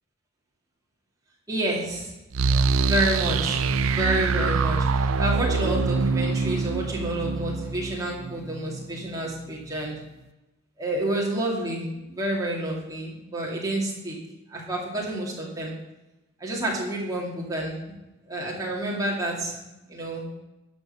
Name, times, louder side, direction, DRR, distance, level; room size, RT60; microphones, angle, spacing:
voice 1, 1.5-2.1 2.8-10.0 10.8-14.2 14.5-15.7 16.4-17.9 18.3-20.2, right 1 dB, 15° right, -3 dB, 2.3 m, -29 dB
sound 1, 2.3-9.1, right 4 dB, 85° right, 0.5 m, -25 dB
11.5 x 5.3 x 6.7 m, 1.0 s
head